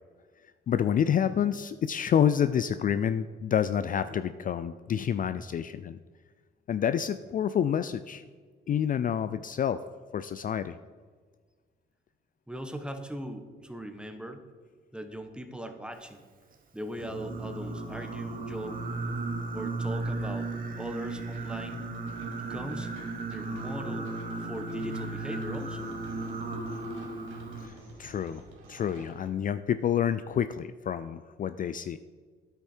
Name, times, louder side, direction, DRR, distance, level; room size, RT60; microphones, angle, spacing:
voice 1, 0.7-6.0 6.7-8.2 8.7-9.8 10.1-10.8 27.6-28.4 28.7-32.0, left 9 dB, 45° left, 12 dB, 0.4 m, -28 dB
voice 2, 12.5-14.4 14.9-16.2 16.7-18.9 19.5-20.5 20.8-21.8 22.3-22.9 23.2-24.1 24.4-25.9, right 1 dB, 5° right, 6 dB, 1.2 m, -40 dB
Singing, 17.0-27.7, right 2 dB, 45° right, 1.4 m, -35 dB
sound 1, 21.3-29.3, right 3 dB, 85° right, 1.9 m, -52 dB
9.7 x 8.2 x 4.5 m, 1.5 s
cardioid pair, 90°, 20 cm